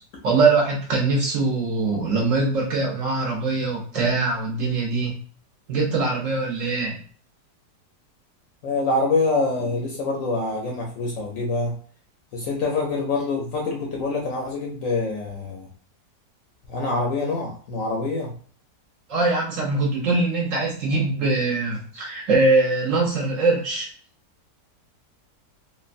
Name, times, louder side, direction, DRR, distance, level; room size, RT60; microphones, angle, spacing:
voice 1, 0.2-5.1 5.7-7.0 19.1-23.9, right 3 dB, 60° right, -2 dB, 0.9 m, -22 dB
voice 2, 8.6-11.8 12.3-15.7 16.7-18.3, left 3 dB, 65° left, -1 dB, 0.9 m, -25 dB
3.2 x 2.2 x 2.4 m, 0.43 s
omnidirectional pair, 1.8 m